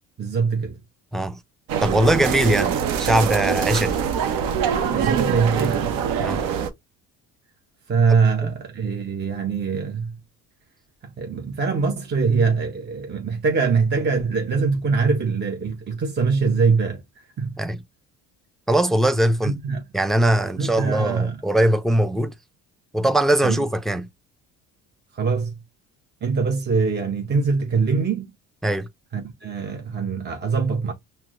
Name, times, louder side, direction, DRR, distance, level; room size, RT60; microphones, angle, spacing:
voice 1, 0.2-0.8 4.9-6.0 7.9-10.2 11.2-17.6 19.4-19.8 20.6-21.4 23.4-23.6 25.1-25.6 26.2-28.3 29.1-30.9, right 5 dB, 30° right, 0.8 m, -23 dB
sound 1, 1.7-6.7, right 7 dB, 80° right, 0.8 m, -23 dB
voice 2, 1.8-4.0 6.2-6.4 17.6-17.8 18.7-19.6 19.9-22.3 22.9-24.1 28.6-28.9, right 1 dB, ahead, 0.3 m, -21 dB
5.8 x 2.1 x 2.4 m
cardioid pair, 90°, 34 cm